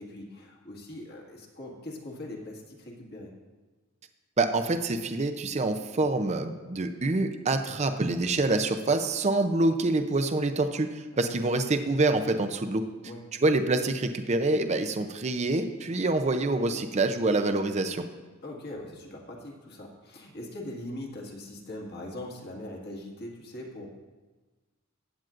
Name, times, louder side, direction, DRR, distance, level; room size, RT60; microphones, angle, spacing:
voice 1, 0.0-3.3 11.1-11.3 13.0-13.2 18.4-23.9, left 1 dB, 50° left, -1 dB, 1.8 m, -41 dB
voice 2, 4.4-12.9 13.4-18.1, right 2 dB, 30° right, 7 dB, 0.5 m, -26 dB
15.5 x 9.0 x 2.5 m, 1.3 s
head